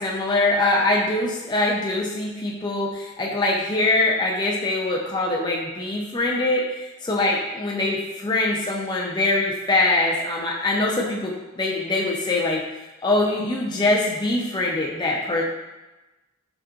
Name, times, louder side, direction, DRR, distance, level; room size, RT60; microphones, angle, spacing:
voice 1, 0.0-6.6 7.0-12.6 13.0-15.4, left 2 dB, 20° left, -3 dB, 0.4 m, -23 dB
5.0 x 3.6 x 2.3 m, 1.1 s
head